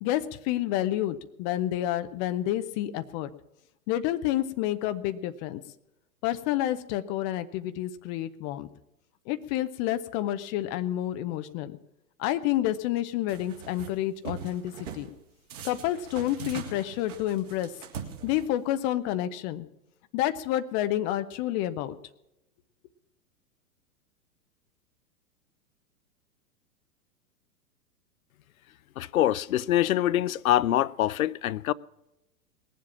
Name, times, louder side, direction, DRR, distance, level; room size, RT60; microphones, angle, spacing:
voice 1, 0.0-3.3 3.9-5.6 6.2-8.7 9.3-11.8 12.2-15.1 15.6-17.7 18.2-19.6 20.1-22.0, left 13 dB, 20° left, 0.4 m, -29 dB
sound 1, 13.3-13.9 14.3-15.1 15.5-18.7, right 7 dB, 55° right, 3.2 m, -41 dB
voice 2, 29.0-31.7, left 13 dB, 65° left, 0.6 m, -24 dB
19.5 x 7.7 x 7.3 m
figure-of-eight pair, 110°, 46 cm